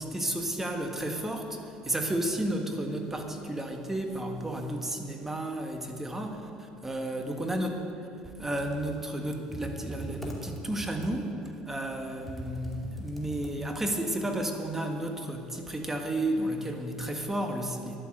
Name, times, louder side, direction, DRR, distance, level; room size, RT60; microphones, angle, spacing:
voice 1, 0.0-1.6 1.8-7.8 8.4-11.3 11.6-18.0, right 1 dB, 15° right, 4 dB, 1.7 m, -32 dB
Computer keyboard, 8.4-14.0, right 1 dB, 5° left, 2.5 m, -42 dB
11.5 x 9.6 x 7.8 m, 2.7 s
supercardioid pair, 85°, 3 cm